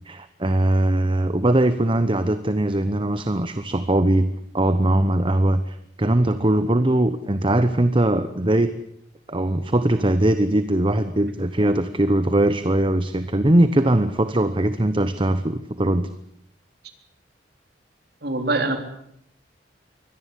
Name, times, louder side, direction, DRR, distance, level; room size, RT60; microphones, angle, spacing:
voice 1, 0.1-4.3 4.5-8.7 9.3-16.1, right 1 dB, 30° right, 11 dB, 1.0 m, -20 dB
voice 2, 18.2-18.8, right 2 dB, 65° right, 5 dB, 3.8 m, -23 dB
24.0 x 18.0 x 8.3 m, 0.74 s
head